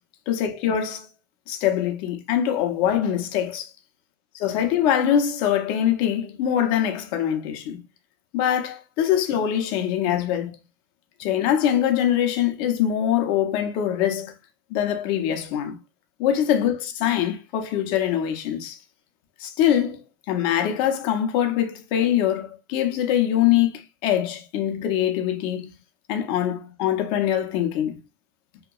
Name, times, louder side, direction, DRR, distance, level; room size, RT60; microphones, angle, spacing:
voice 1, 0.3-1.1 1.5-3.7 4.4-7.8 8.3-10.5 11.2-14.3 14.7-15.8 16.2-18.8 19.4-20.0 20.3-25.7 26.1-28.0, left 10 dB, 45° left, 0.6 m, -23 dB
2.8 x 2.1 x 2.3 m
supercardioid pair, 150°, 11 cm